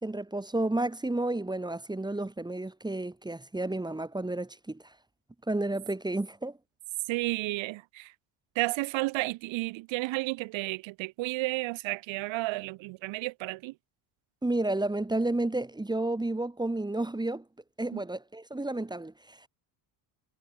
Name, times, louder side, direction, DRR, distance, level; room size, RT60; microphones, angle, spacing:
voice 1, 0.0-4.9 5.5-6.6 14.4-17.4 17.8-19.5, right 2 dB, 10° right, 3.7 m, -31 dB
voice 2, 7.1-8.1 8.6-13.7 17.9-18.0, right 21 dB, 80° right, 1.9 m, -32 dB
cardioid pair, 120°, 45 cm